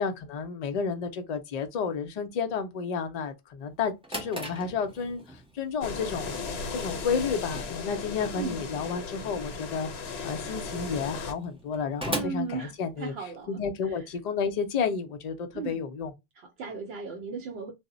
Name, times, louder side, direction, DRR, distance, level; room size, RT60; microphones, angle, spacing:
voice 1, 0.0-6.4 6.7-9.9 10.2-13.1 13.5-16.1, left 6 dB, 55° left, 0.5 m, -31 dB
Drawer open or close, 3.7-13.4, right 1 dB, 5° right, 0.5 m, -41 dB
sound 1, 5.8-11.3, left 4 dB, 80° left, 0.9 m, -36 dB
voice 2, 8.4-8.7 12.1-14.1 15.5-15.8 16.4-17.7, right 4 dB, 75° right, 0.8 m, -36 dB
2.0 x 2.0 x 3.6 m
omnidirectional pair, 1.1 m